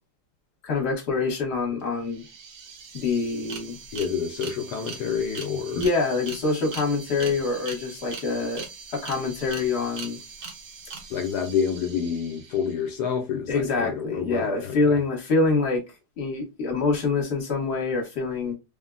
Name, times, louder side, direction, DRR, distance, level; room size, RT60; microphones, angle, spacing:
voice 1, 0.6-2.2 2.9-3.8 5.8-8.7 8.9-10.2 13.5-15.8 16.2-18.5, left 3 dB, 45° left, 1.2 m, -25 dB
sound 1, 1.8-1.9 2.1-12.9, right 5 dB, 70° right, 1.2 m, -41 dB
voice 2, 3.9-5.8 11.1-15.0, left 7 dB, 80° left, 1.1 m, -28 dB
3.4 x 2.1 x 2.4 m
omnidirectional pair, 1.8 m